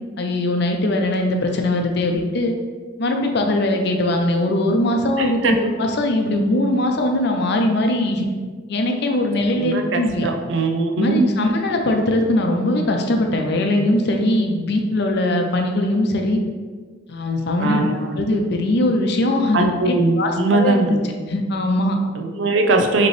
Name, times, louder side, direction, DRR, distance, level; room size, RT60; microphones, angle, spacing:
voice 1, 0.2-2.5 3.0-8.3 8.7-10.3 10.9-16.4 17.1-17.8 18.2-21.0 21.3-22.0, left 1 dB, 60° left, 3 dB, 0.6 m, -20 dB
voice 2, 5.2-5.5 9.6-11.5 17.6-18.0 19.5-21.0 22.2-23.1, right 3 dB, 75° right, 4 dB, 0.5 m, -20 dB
5.2 x 3.0 x 3.2 m, 1.5 s
head